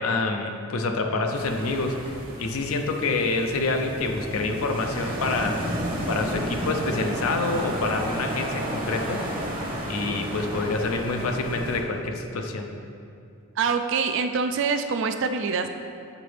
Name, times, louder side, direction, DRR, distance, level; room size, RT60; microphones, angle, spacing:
voice 1, 0.0-5.6 6.1-9.2 9.9-12.7, left 3 dB, 70° left, 4 dB, 0.5 m, -27 dB
sound 1, 1.3-11.8, right 1 dB, 40° right, 0.9 m, -32 dB
voice 2, 13.6-15.7, right 5 dB, 55° right, 7 dB, 0.3 m, -25 dB
8.1 x 3.9 x 3.3 m, 2.5 s
head